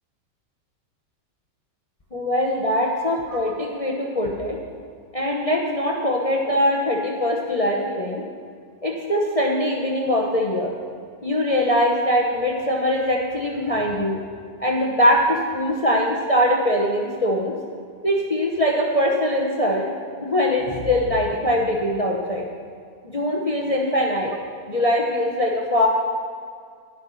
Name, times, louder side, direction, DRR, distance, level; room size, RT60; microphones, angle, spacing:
voice 1, 2.1-4.6 5.1-8.2 8.8-10.7 11.2-14.2 14.6-17.5 18.0-19.9 20.2-22.4 23.0-24.4 24.7-25.9, equal, 30° left, -1 dB, 0.6 m, -22 dB
10.5 x 10.5 x 4.2 m, 2.1 s
omnidirectional pair, 2.0 m